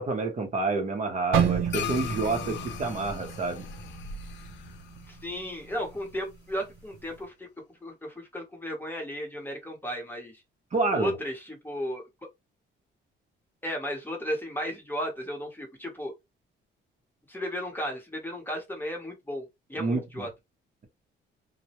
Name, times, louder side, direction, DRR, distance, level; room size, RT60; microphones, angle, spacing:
voice 1, 0.0-3.6 10.7-11.2 19.8-20.2, right 3 dB, 35° right, 0.6 m, -28 dB
sound 1, 1.3-5.4 5.7-6.0 6.6-7.0, right 8 dB, 80° right, 0.5 m, -31 dB
sound 2, 1.7-6.3, left 10 dB, 65° left, 0.4 m, -39 dB
voice 2, 5.1-7.5 7.8-10.4 10.9-12.0 13.6-16.1 17.3-20.3, equal, 10° left, 0.8 m, -34 dB
2.1 x 2.0 x 2.8 m
cardioid pair, 115°, 21 cm